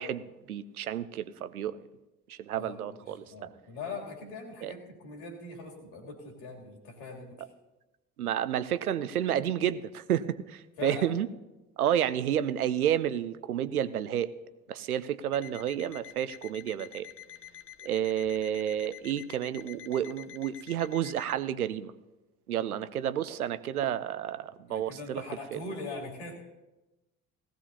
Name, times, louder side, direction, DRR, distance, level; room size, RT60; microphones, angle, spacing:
voice 1, 0.0-1.8 2.3-3.5 4.6-4.7 8.2-11.3 11.8-14.3 14.7-17.1 17.8-21.9 22.5-25.2 25.5-25.6, right 10 dB, 85° right, 14 dB, 0.5 m, -30 dB
voice 2, 2.5-7.4 10.8-11.1 24.7-26.3, left 3 dB, 65° left, 0 dB, 2.9 m, -41 dB
Alarm, 15.3-21.4, left 12 dB, 30° left, 0.8 m, -48 dB
18.0 x 15.5 x 2.8 m, 1.1 s
figure-of-eight pair, 50°, 43 cm